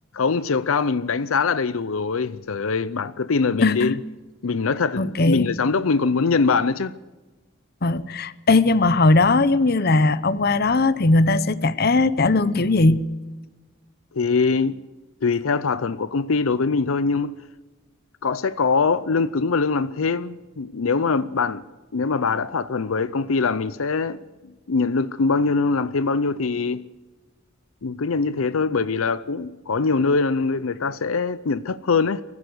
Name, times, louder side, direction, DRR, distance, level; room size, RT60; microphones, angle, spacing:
voice 1, 0.1-4.0 4.4-7.0 14.1-14.8 15.2-17.3 18.2-21.6 21.9-24.2 24.7-26.8 27.8-32.2, left 4 dB, 80° left, 0.6 m, -23 dB
voice 2, 3.6-4.0 5.0-5.5 7.8-13.1, left 3 dB, 45° left, 0.8 m, -19 dB
23.5 x 15.5 x 7.9 m
head